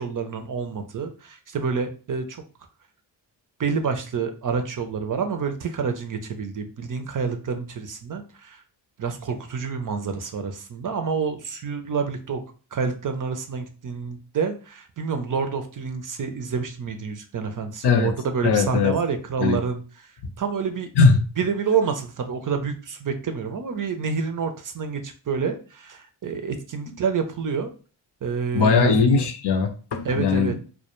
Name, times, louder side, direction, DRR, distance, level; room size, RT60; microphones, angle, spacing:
voice 1, 0.0-2.4 3.6-8.6 9.0-12.4 12.7-19.8 20.4-20.9 21.4-27.7 28.2-29.0 30.0-30.6, right 5 dB, 45° right, 6 dB, 0.5 m, -28 dB
voice 2, 18.4-18.9 19.4-19.6 21.0-21.2 28.5-30.6, left 5 dB, 60° left, 5 dB, 0.6 m, -19 dB
2.1 x 2.1 x 2.9 m, 0.36 s
cardioid pair, 45°, 47 cm